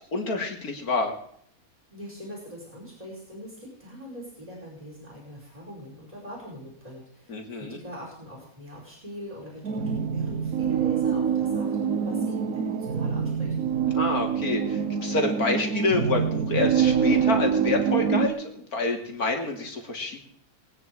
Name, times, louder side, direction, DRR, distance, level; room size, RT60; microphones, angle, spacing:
voice 1, 0.1-1.1 7.3-7.8 13.9-20.2, left 3 dB, 80° left, 3 dB, 3.0 m, -27 dB
voice 2, 1.9-13.5, equal, 25° right, -5 dB, 5.3 m, -42 dB
sound 1, 9.6-18.3, right 7 dB, 70° right, 1.5 m, -25 dB
22.5 x 9.6 x 4.8 m, 0.66 s
omnidirectional pair, 1.6 m